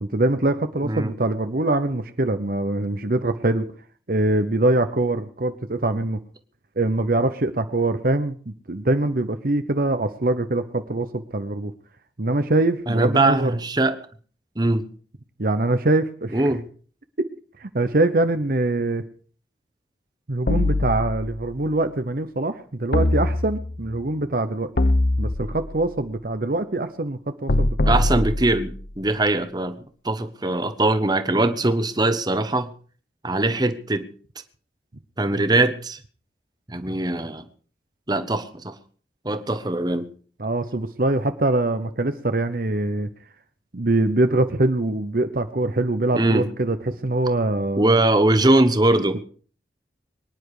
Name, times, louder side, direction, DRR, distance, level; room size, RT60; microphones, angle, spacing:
voice 1, 0.0-3.7 4.1-6.2 6.8-11.7 12.2-13.5 15.4-16.4 17.6-19.0 20.3-24.7 25.2-28.0 40.4-43.1 43.7-46.8 47.0-48.0 49.0-49.1, right 2 dB, 55° right, 9 dB, 0.9 m, -23 dB
voice 2, 12.9-14.0 14.6-14.8 16.3-16.6 27.9-29.7 30.0-32.7 33.2-34.1 35.2-36.0 36.7-37.4 38.1-38.7 39.2-40.1 46.1-46.5 47.8-49.2, right 2 dB, 25° right, 9 dB, 1.2 m, -21 dB
sound 1, 20.5-21.5 22.9-23.9 24.8-25.8 27.5-28.9, left 2 dB, 60° left, 0.9 m, -22 dB
23.5 x 10.5 x 5.0 m, 0.43 s
head